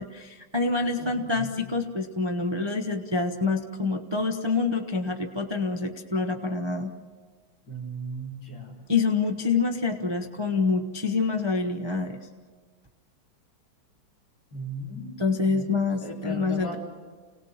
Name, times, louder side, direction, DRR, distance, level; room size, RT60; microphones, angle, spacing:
voice 1, 0.0-6.9 8.9-12.2 15.2-16.8, left 4 dB, 25° right, 4 dB, 0.5 m, -26 dB
voice 2, 1.0-1.5 7.7-8.8 14.5-16.8, right 1 dB, 45° left, -6 dB, 4.4 m, -37 dB
29.0 x 18.5 x 7.4 m, 1.5 s
omnidirectional pair, 2.4 m